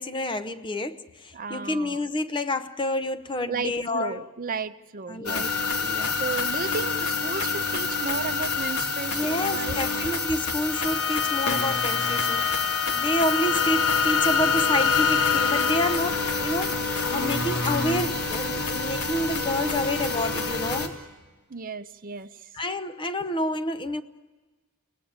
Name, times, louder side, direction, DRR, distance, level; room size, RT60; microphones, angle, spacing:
voice 1, 0.0-4.2 5.1-5.5 5.8-6.2 9.1-12.5 12.9-16.8 17.1-20.9 22.5-24.0, left 1 dB, 20° left, 0.7 m, -29 dB
voice 2, 1.3-2.0 3.5-5.6 6.2-10.0 21.5-22.5, right 5 dB, 40° right, 0.7 m, -34 dB
sound 1, 5.3-20.9, left 4 dB, 90° left, 2.6 m, -27 dB
Bowed string instrument, 10.7-16.0, left 7 dB, 50° left, 1.5 m, -28 dB
30.0 x 19.0 x 8.7 m
head